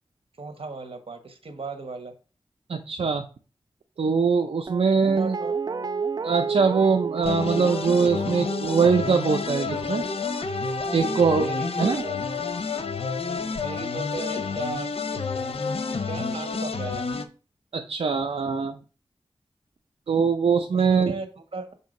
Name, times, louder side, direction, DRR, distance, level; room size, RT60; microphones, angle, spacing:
voice 1, 0.4-2.1 5.0-5.5 11.0-12.2 13.2-14.9 15.5-17.1 20.7-21.7, right 3 dB, 70° right, 7 dB, 1.3 m, -37 dB
voice 2, 2.7-3.2 4.0-5.3 6.2-10.0 10.9-11.5 11.8-12.0 17.7-18.8 20.1-21.1, right 5 dB, 90° right, 4 dB, 0.5 m, -22 dB
Guitar, 4.7-11.7 12.0-12.1, right 5 dB, 40° right, 0.4 m, -33 dB
sound 1, 7.2-17.2, left 4 dB, 75° left, 0.7 m, -29 dB
6.7 x 2.8 x 5.1 m, 0.35 s
cardioid pair, 50°, 10 cm